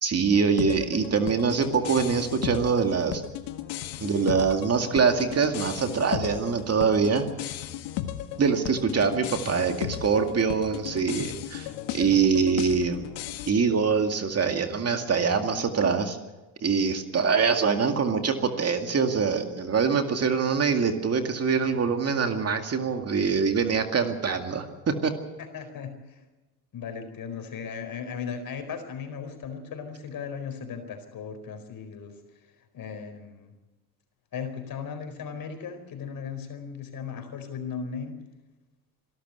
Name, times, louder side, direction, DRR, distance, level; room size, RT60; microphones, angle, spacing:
voice 1, 0.0-3.2 4.0-7.6 8.4-11.7 11.9-13.0 13.5-16.2 16.6-25.1, right 5 dB, 35° right, 6 dB, 2.2 m, -24 dB
sound 1, 0.6-13.5, left 12 dB, 70° left, 1.7 m, -35 dB
voice 2, 25.5-26.2 26.7-32.1 32.7-33.5 34.3-38.1, left 6 dB, 50° left, 7 dB, 4.5 m, -37 dB
25.5 x 13.0 x 8.2 m, 1.1 s
supercardioid pair, 80°, 44 cm